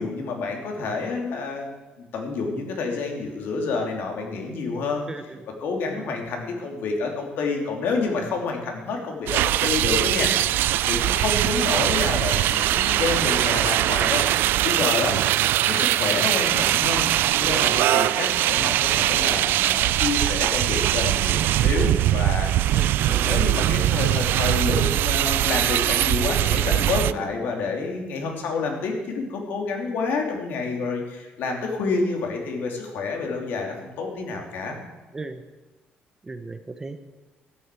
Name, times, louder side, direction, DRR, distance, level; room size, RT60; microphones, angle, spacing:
voice 1, 0.0-1.7 2.1-5.0 5.6-14.2 14.6-15.2 15.6-17.0 17.4-22.5 23.0-34.8, left 4 dB, 70° left, 2 dB, 3.0 m, -28 dB
voice 2, 5.1-5.5 5.9-6.2 22.7-23.4 35.1-35.4 36.2-37.0, right 3 dB, 15° right, 9 dB, 0.7 m, -36 dB
sound 1, 9.3-27.1, right 14 dB, 80° right, 0.4 m, -21 dB
13.0 x 10.0 x 7.6 m, 1.1 s
cardioid pair, 170°, 4 cm